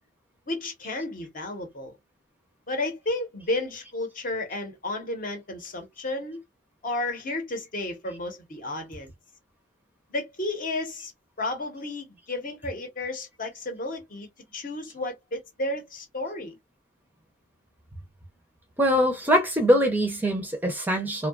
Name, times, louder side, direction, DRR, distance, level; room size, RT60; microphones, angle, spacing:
voice 1, 0.5-2.0 2.7-6.4 6.8-9.1 10.1-11.1 11.4-16.5, left 2 dB, 45° left, 0.8 m, -32 dB
voice 2, 18.8-21.3, equal, 10° right, 0.5 m, -23 dB
2.7 x 2.2 x 2.2 m
head